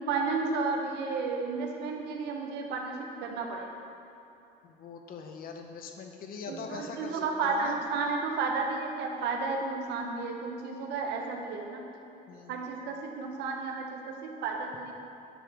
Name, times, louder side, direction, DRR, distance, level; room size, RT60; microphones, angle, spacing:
voice 1, 0.0-3.7 6.5-11.9 12.5-14.9, right 4 dB, 85° right, 2 dB, 0.9 m, -32 dB
voice 2, 4.6-7.8 12.3-12.5, left 5 dB, 60° left, 4 dB, 0.8 m, -42 dB
9.8 x 4.9 x 3.4 m, 2.9 s
cardioid pair, 110°, 17 cm